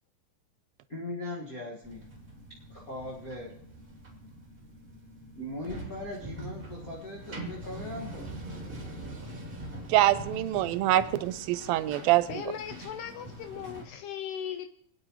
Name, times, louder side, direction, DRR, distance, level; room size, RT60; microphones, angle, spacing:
voice 1, 0.9-2.0 2.7-3.5 5.3-8.2, left 1 dB, 40° left, -6 dB, 1.3 m, -39 dB
sound 1, 1.8-13.8, right 1 dB, 20° right, 1.7 m, -43 dB
voice 2, 9.9-12.4, right 14 dB, 85° right, 14 dB, 2.3 m, -25 dB
voice 3, 12.3-14.7, left 9 dB, 85° left, 7 dB, 1.8 m, -38 dB
25.5 x 9.2 x 3.1 m, 0.68 s
omnidirectional pair, 4.2 m